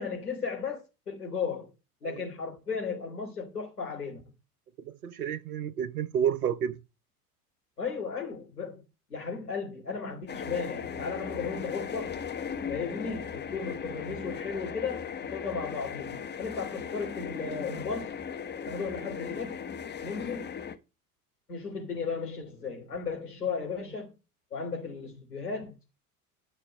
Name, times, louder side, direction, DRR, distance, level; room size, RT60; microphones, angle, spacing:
voice 1, 0.0-1.7 2.0-4.2 7.8-8.8 9.1-12.1 12.7-18.1 18.7-19.6 20.0-20.5 21.5-24.1 24.5-26.0, left 5 dB, 75° left, 3.4 m, -35 dB
voice 2, 4.9-6.8, right 8 dB, 70° right, 1.0 m, -30 dB
sound 1, 10.3-20.8, left 7 dB, 20° left, 1.3 m, -37 dB
11.5 x 6.5 x 6.5 m
figure-of-eight pair, 70°, 46 cm